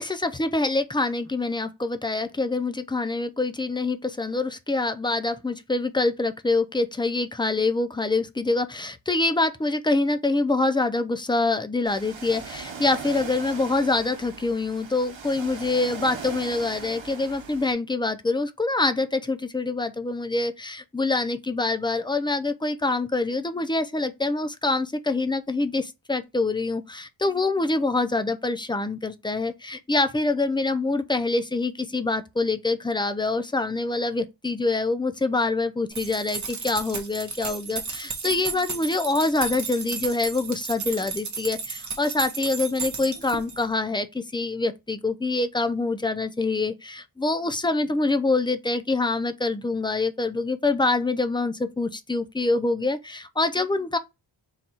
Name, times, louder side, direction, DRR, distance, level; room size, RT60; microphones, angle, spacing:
voice 1, 0.0-54.0, left 3 dB, 10° left, 0.4 m, -25 dB
Ocean, 11.9-17.7, right 5 dB, 75° right, 0.9 m, -39 dB
sound 1, 35.9-43.7, right 5 dB, 40° right, 0.8 m, -34 dB
4.0 x 2.3 x 4.2 m
wide cardioid pair, 100°, 46 cm